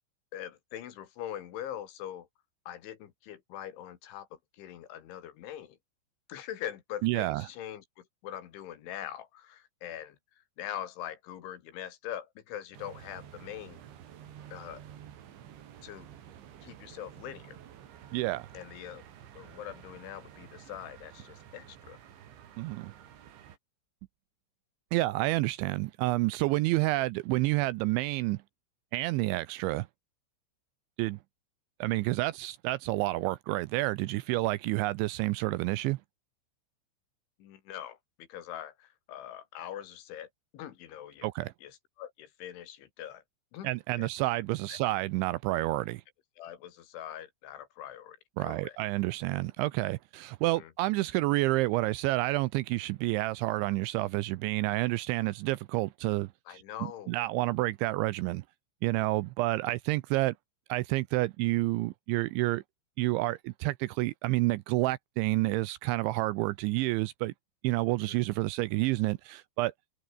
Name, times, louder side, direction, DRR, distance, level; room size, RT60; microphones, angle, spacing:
voice 1, 0.3-2.3 2.7-5.8 6.3-13.8 14.5-14.8 15.8-16.1 16.6-17.6 18.5-19.0 19.4-22.0 37.4-41.3 41.6-43.2 43.5-43.7 44.0-44.1 44.7-44.8 46.4-48.8 50.5-50.7 56.5-57.1 68.0-68.2, left 11 dB, 70° left, 4.4 m, -43 dB
voice 2, 7.0-7.4 18.1-18.5 22.6-22.9 24.9-28.4 28.9-29.9 31.0-31.2 31.8-36.0 41.2-41.5 43.6-46.0 48.4-56.6 57.1-58.4 58.8-60.3 60.7-62.6 63.0-67.3 67.6-69.7, right 19 dB, 85° right, 2.7 m, -29 dB
sound 1, 12.7-23.6, right 10 dB, 65° right, 4.8 m, -51 dB
omnidirectional pair, 5.8 m